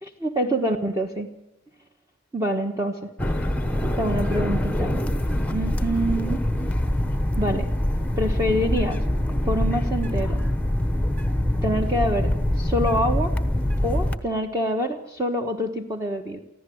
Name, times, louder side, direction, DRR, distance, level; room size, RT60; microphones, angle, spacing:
voice 1, 0.0-1.3 2.3-3.1 4.0-5.0 5.5-6.4 7.4-7.7 8.2-9.0 9.4-10.4 11.6-13.3 13.8-16.4, equal, 15° right, 3 dB, 1.3 m, -26 dB
sound 1, 3.2-14.2, left 1 dB, 5° left, 1.0 m, -24 dB
25.0 x 15.0 x 7.9 m, 0.85 s
head